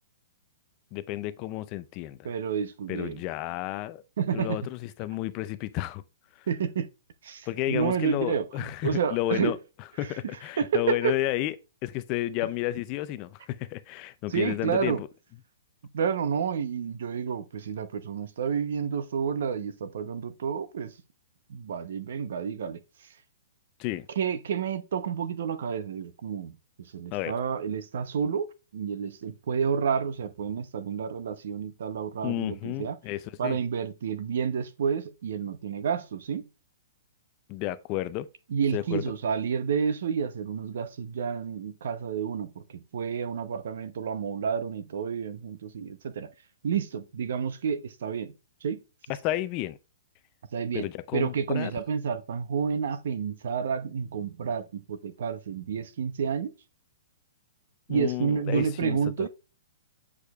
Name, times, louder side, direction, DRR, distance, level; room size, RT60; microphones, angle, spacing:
voice 1, 0.9-2.3 2.9-4.0 4.3-6.0 6.4-6.5 7.5-9.6 10.0-11.6 11.8-15.1 23.8-24.1 27.1-27.4 32.2-33.6 37.5-38.3 38.7-39.1 49.1-49.8 50.7-51.7 57.9-59.3, left 15 dB, 35° left, 0.4 m, -31 dB
voice 2, 2.2-3.2 4.2-4.6 6.5-6.9 7.2-9.6 10.2-11.1 14.3-15.0 15.9-20.9 21.5-22.8 24.2-33.0 33.4-36.4 38.5-46.3 46.6-48.3 48.6-48.8 50.5-50.9 51.1-56.5 57.9-59.3, right 6 dB, 70° right, 0.8 m, -30 dB
8.3 x 4.9 x 2.4 m
hypercardioid pair, 145°, 0 cm